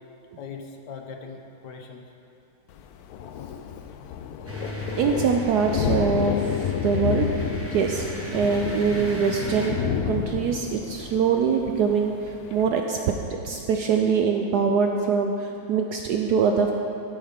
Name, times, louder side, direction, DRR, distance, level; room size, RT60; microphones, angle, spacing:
voice 1, 0.4-2.0 3.4-3.8, left 5 dB, 70° left, 3 dB, 1.2 m, -41 dB
Thunder, 2.7-12.7, left 8 dB, 90° left, 0.8 m, -31 dB
sound 1, 4.5-9.7, equal, 10° right, 0.9 m, -35 dB
voice 2, 5.0-6.4 6.7-7.3 7.7-8.1 8.3-9.8 10.1-13.0 13.4-16.7, right 6 dB, 70° right, 3 dB, 0.9 m, -23 dB
13.0 x 8.5 x 3.6 m, 2.7 s
omnidirectional pair, 2.1 m